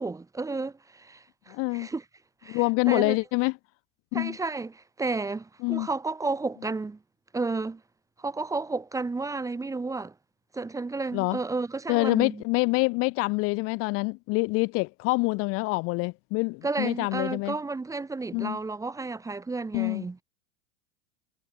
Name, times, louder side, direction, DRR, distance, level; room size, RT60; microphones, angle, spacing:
voice 1, 0.0-2.0 2.4-3.2 4.1-7.0 7.3-7.8 8.2-10.1 10.5-12.4 16.6-20.2, right 3 dB, 10° right, 1.1 m, -32 dB
voice 2, 1.5-1.9 2.5-3.5 4.1-4.4 5.6-5.9 11.1-11.4 11.9-17.6 18.3-18.6 19.7-20.0, left 27 dB, 40° left, 0.6 m, -26 dB
hypercardioid pair, 110°, 36 cm